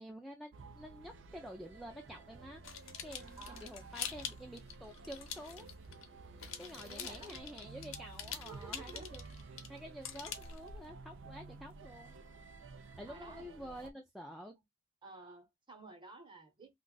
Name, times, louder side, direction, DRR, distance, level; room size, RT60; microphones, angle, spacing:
voice 1, 0.0-2.6 3.0-5.7 6.6-9.3 9.7-12.1 13.0-14.6, equal, ahead, 0.4 m, -49 dB
sound 1, 0.5-13.9, right 3 dB, 65° right, 0.5 m, -53 dB
sound 2, 2.6-6.1 6.4-10.9, left 8 dB, 80° left, 0.7 m, -45 dB
voice 2, 3.4-3.8 6.8-7.4 8.4-9.1 13.1-13.9 15.0-16.7, right 3 dB, 25° right, 1.0 m, -53 dB
2.5 x 2.4 x 3.8 m
head